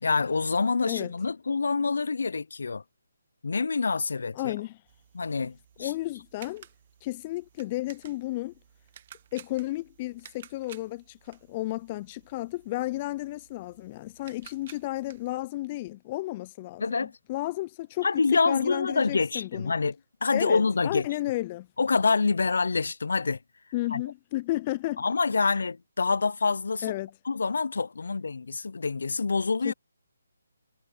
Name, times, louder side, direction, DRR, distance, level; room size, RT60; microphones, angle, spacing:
voice 1, 0.0-2.8 3.4-4.5 5.1-5.9 16.8-17.1 18.0-19.9 20.2-21.1 21.8-23.4 23.9-24.0 25.0-26.8 27.3-29.7, left 4 dB, 70° left, 0.7 m, -26 dB
voice 2, 4.4-4.8 5.4-5.5 5.8-6.7 7.0-8.5 9.3-19.8 20.3-21.7 23.7-25.0 25.4-25.5 26.8-27.1 29.6-29.7, left 18 dB, 25° left, 0.4 m, -33 dB
sound 1, 4.9-15.4, right 10 dB, 40° right, 1.6 m, -54 dB
figure-of-eight pair, 155°, 0 cm